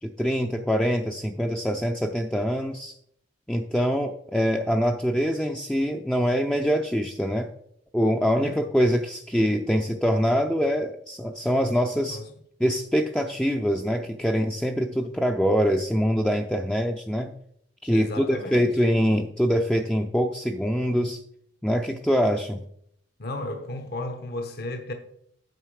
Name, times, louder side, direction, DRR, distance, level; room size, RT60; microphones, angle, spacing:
voice 1, 0.0-2.9 3.5-7.5 7.9-12.2 12.6-17.3 17.8-21.2 21.6-22.6, equal, 5° left, 0.5 m, -24 dB
voice 2, 17.9-18.7 23.2-24.9, left 1 dB, 55° left, 1.0 m, -34 dB
9.2 x 6.5 x 4.8 m
head